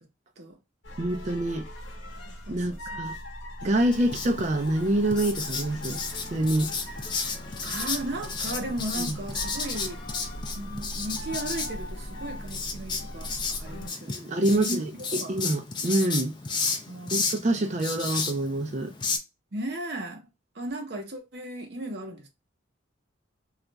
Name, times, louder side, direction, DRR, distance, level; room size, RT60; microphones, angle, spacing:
sound 1, 0.8-13.9, equal, 70° left, 0.8 m, -40 dB
voice 1, 1.0-1.7 2.5-3.1 3.6-6.0 6.3-6.7 9.0-9.2 14.1-16.4 17.1-18.9, right 1 dB, 40° right, 0.4 m, -26 dB
voice 2, 2.5-3.0 7.6-10.0 10.5-15.5 16.9-17.5 19.5-20.2 20.5-22.3, right 1 dB, 60° right, 0.8 m, -36 dB
Writing, 3.9-19.2, left 4 dB, 25° left, 0.4 m, -33 dB
2.4 x 2.2 x 3.9 m
head